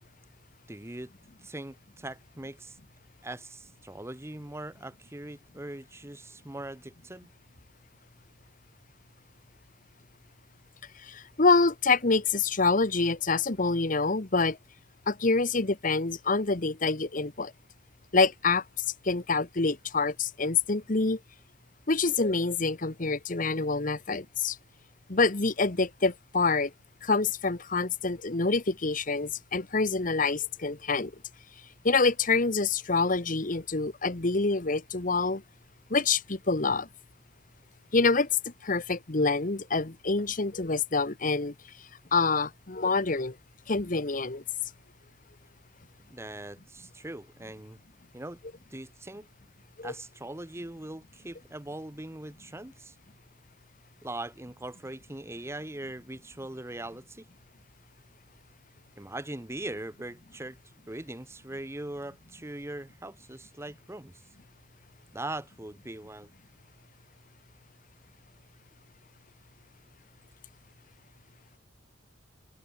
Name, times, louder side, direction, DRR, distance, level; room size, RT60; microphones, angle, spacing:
voice 1, 0.7-1.1 1.4-2.8 3.2-7.3 46.0-47.8 48.1-48.4 48.7-49.3 49.8-52.9 54.0-57.3 59.0-60.6 60.9-64.1 65.1-66.3, right 1 dB, 15° right, 0.9 m, -41 dB
voice 2, 11.0-14.6 15.1-17.5 18.1-18.6 19.0-21.2 21.9-24.6 25.1-26.7 27.0-31.1 31.8-35.4 35.9-36.9 37.9-38.3 38.6-41.5 42.1-43.4 43.7-44.4 49.8-49.9, left 3 dB, 45° left, 1.2 m, -26 dB
head